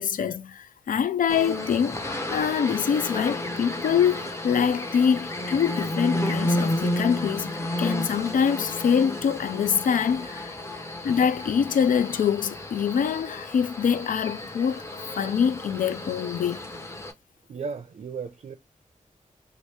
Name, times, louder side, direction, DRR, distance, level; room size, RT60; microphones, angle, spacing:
voice 1, 0.0-10.5 11.0-16.6, left 7 dB, 80° left, 0.4 m, -25 dB
sound 1, 1.3-17.1, left 1 dB, 20° left, 0.6 m, -32 dB
voice 2, 17.5-18.5, right 5 dB, 55° right, 0.5 m, -35 dB
2.9 x 2.6 x 3.2 m
wide cardioid pair, 115°, 14 cm